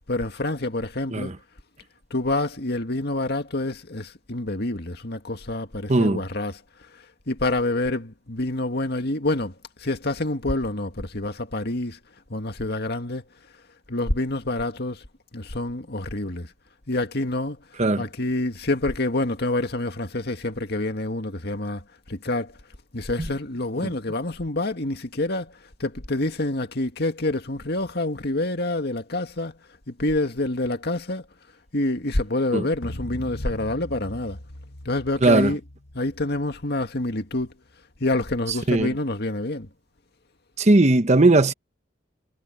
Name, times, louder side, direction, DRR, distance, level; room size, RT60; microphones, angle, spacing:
voice 1, 0.1-1.3 2.1-6.6 7.3-12.0 12.3-13.2 13.9-15.0 15.3-16.5 16.9-17.6 18.0-22.5 22.9-29.6 29.9-31.2 31.7-34.4 34.9-35.6 35.9-37.5 38.0-39.7, left 2 dB, 55° left, 2.1 m, -27 dB
voice 2, 5.9-6.2 17.8-18.0 32.5-32.7 35.2-35.5 38.7-38.9 40.6-41.5, right 2 dB, 35° right, 1.0 m, -18 dB
sound 1, 32.8-37.3, left 1 dB, 85° left, 1.7 m, -40 dB
head